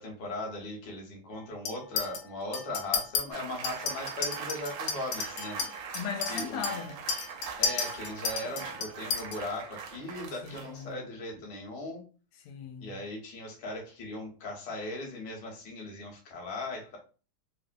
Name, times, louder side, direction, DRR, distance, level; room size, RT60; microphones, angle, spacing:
voice 1, 0.0-5.6 6.3-6.7 7.6-12.0 12.8-17.0, left 1 dB, 55° left, 1.4 m, -38 dB
Chink clink, 1.7-2.2 2.5-3.2 3.6-9.4, left 5 dB, 75° left, 1.4 m, -33 dB
sound 1, 3.3-10.9, right 6 dB, 75° right, 1.0 m, -42 dB
voice 2, 5.6-7.0 10.4-11.0 12.4-12.9, left 6 dB, 90° left, 1.5 m, -38 dB
3.6 x 2.0 x 2.5 m
omnidirectional pair, 2.4 m